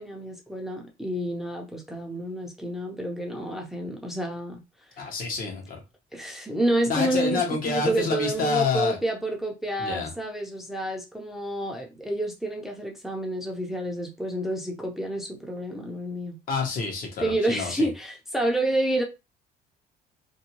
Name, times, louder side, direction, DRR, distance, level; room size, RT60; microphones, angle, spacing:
voice 1, 0.0-4.6 4.9-5.1 6.1-16.4 17.2-19.0, right 1 dB, ahead, 0.6 m, -29 dB
voice 2, 5.0-5.8 6.9-9.0 9.8-10.1 16.5-17.9, left 4 dB, 55° left, 1.0 m, -28 dB
2.6 x 2.2 x 2.8 m
cardioid pair, 110°, 17 cm